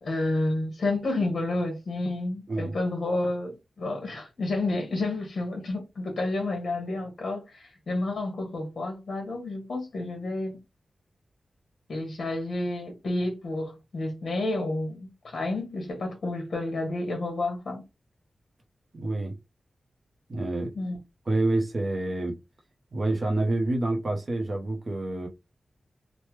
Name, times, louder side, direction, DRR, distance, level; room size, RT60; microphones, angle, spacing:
voice 1, 0.0-10.6 11.9-17.8 20.7-21.0, left 2 dB, 55° left, 1.0 m, -30 dB
voice 2, 18.9-19.4 20.3-20.7 21.3-22.4 22.9-25.3, right 2 dB, 40° right, 0.6 m, -27 dB
3.2 x 2.0 x 3.1 m
wide cardioid pair, 180°, 0 cm